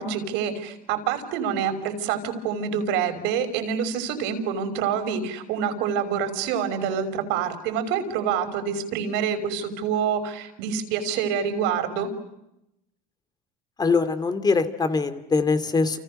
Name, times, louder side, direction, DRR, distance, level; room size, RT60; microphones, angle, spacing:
voice 1, 0.0-12.1, right 7 dB, 70° right, 8 dB, 5.7 m, -27 dB
voice 2, 13.8-16.0, left 4 dB, 20° left, 11 dB, 2.7 m, -22 dB
30.0 x 30.0 x 6.6 m, 0.86 s
cardioid pair, 125°, 19 cm